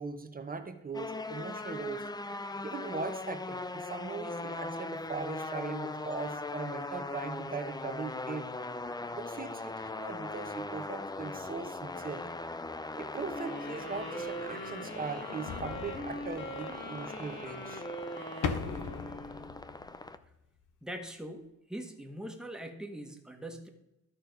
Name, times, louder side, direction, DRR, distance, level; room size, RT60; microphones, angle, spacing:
voice 1, 0.0-2.1 2.6-8.5 9.1-12.3 13.0-17.8, right 4 dB, 30° right, 7 dB, 1.1 m, -40 dB
sound 1, 0.9-20.2, left 2 dB, 15° left, 0.5 m, -40 dB
sound 2, 13.3-19.7, equal, 40° left, 2.1 m, -42 dB
sound 3, 15.5-17.0 18.4-20.4 20.7-20.8, left 6 dB, 85° left, 0.8 m, -38 dB
voice 2, 20.8-23.7, right 1 dB, ahead, 3 dB, 1.4 m, -42 dB
12.5 x 4.3 x 5.3 m, 0.91 s
cardioid pair, 70°, 30 cm